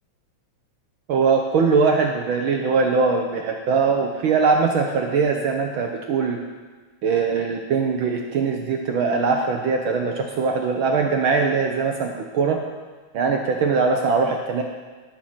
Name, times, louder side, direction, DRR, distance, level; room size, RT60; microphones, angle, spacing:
voice 1, 1.1-6.4 7.0-12.6 13.1-14.6, right 5 dB, 75° right, 2 dB, 1.1 m, -21 dB
17.5 x 7.9 x 4.3 m, 1.4 s
omnidirectional pair, 3.3 m